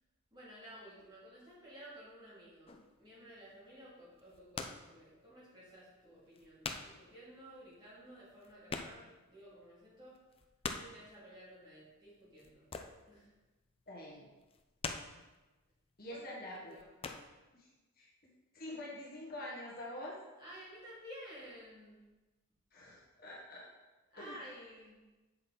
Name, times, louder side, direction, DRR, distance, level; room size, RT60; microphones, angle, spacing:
voice 1, 0.3-10.2 10.7-12.7 13.1-13.3 16.1-16.2 16.6-16.9 20.4-22.0 24.1-25.0, equal, 20° right, -8 dB, 2.7 m, -54 dB
sound 1, 2.7-3.0 4.1-4.9 5.3-5.4 6.0-6.1 6.3-7.0 7.3-7.4 7.7-7.8 8.0-9.3 9.6-9.7 10.1-11.0 12.3-13.1 13.5-13.8 14.4-15.3 16.0-16.2 16.5-17.3, left 4 dB, 25° left, 0.4 m, -43 dB
voice 2, 13.9-14.3 16.0-16.8 17.1-17.2 17.5-17.7 18.0-20.2 22.7-23.7 24.1-24.4, left 1 dB, 45° left, -4 dB, 1.6 m, -46 dB
7.7 x 5.7 x 4.0 m, 1.1 s
head